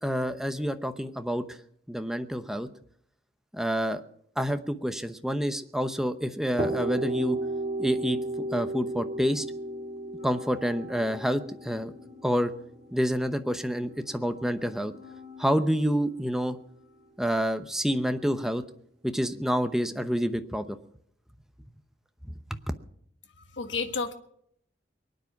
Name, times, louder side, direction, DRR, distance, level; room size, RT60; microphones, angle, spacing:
voice 1, 0.0-1.6 1.9-2.7 3.5-4.0 4.4-7.4 7.8-8.2 8.5-9.4 10.2-11.9 12.2-12.5 12.9-14.9 15.4-16.6 17.2-18.6 19.0-20.8 22.3-22.6, equal, 5° right, 8 dB, 0.8 m, -28 dB
sound 1, 6.6-14.3, right 1 dB, 35° right, 2.7 m, -34 dB
sound 2, 10.2-17.1, left 3 dB, 55° left, 6.7 m, -52 dB
voice 2, 23.4-24.1, left 4 dB, 75° left, 7 dB, 1.4 m, -31 dB
23.0 x 9.6 x 5.9 m, 0.70 s
head